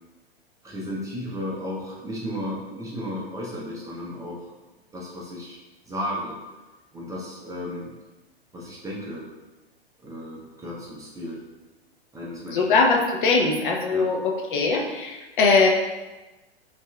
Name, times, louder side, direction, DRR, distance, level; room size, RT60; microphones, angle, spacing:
voice 1, 0.6-4.4 4.9-5.6 5.8-6.4 6.9-7.9 8.5-9.3 10.0-11.4 12.1-12.7 13.9-14.1, equal, 10° right, -5 dB, 0.6 m, -34 dB
voice 2, 12.5-15.7, left 4 dB, 55° left, 0 dB, 0.6 m, -21 dB
5.3 x 2.5 x 2.2 m, 1.1 s
figure-of-eight pair, 105°, 31 cm